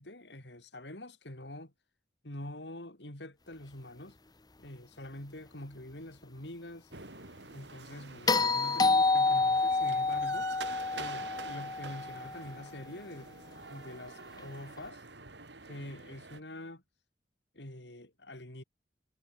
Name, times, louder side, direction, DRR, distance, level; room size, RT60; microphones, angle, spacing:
voice 1, 0.0-1.7 2.2-4.2 4.6-6.9 7.5-10.5 10.9-13.4 13.7-15.0 15.6-16.8 17.5-18.6, left 1 dB, 75° left, 4.8 m, -45 dB
sound 1, 6.9-16.4, right 4 dB, 75° right, 4.2 m, -47 dB
sound 2, 8.3-12.5 14.8-14.9, left 3 dB, 20° left, 0.9 m, -28 dB
head